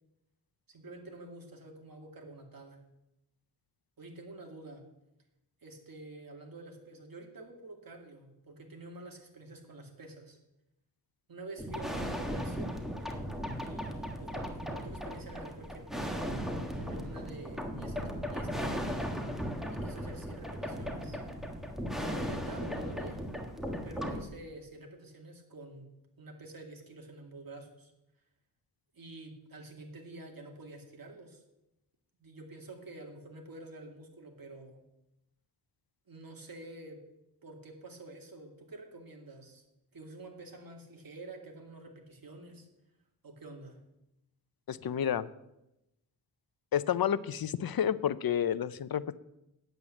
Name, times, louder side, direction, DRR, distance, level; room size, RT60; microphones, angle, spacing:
voice 1, 0.7-2.8 4.0-4.8 5.6-10.4 11.3-12.7 13.6-16.3 16.7-17.9 18.3-18.9 19.7-21.2 22.0-23.2 23.8-25.9 26.2-27.9 28.9-31.4 32.2-34.8 36.1-37.0 37.4-39.6 39.9-42.7 43.2-43.8, right 2 dB, 55° right, 2 dB, 2.3 m, -48 dB
sound 1, 11.6-24.2, equal, ahead, 1.5 m, -37 dB
voice 2, 44.7-45.3 46.7-49.2, left 9 dB, 55° left, 15 dB, 0.6 m, -30 dB
9.1 x 8.2 x 7.1 m, 0.89 s
wide cardioid pair, 95°, 42 cm